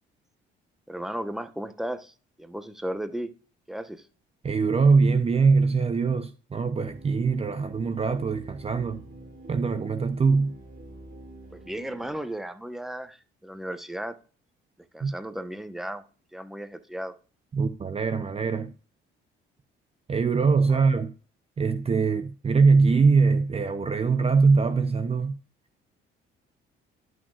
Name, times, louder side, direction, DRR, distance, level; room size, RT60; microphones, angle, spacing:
voice 1, 0.9-3.3 3.7-4.1 11.5-14.1 14.9-16.0 16.3-17.1, right 1 dB, ahead, 0.9 m, -35 dB
voice 2, 4.4-9.0 9.5-10.5 15.0-15.1 17.5-18.7 20.1-21.1 21.6-25.4, right 4 dB, 30° right, 0.6 m, -22 dB
sound 1, 6.8-12.2, right 1 dB, 50° right, 3.1 m, -46 dB
10.5 x 6.2 x 2.4 m
cardioid pair, 90°, 21 cm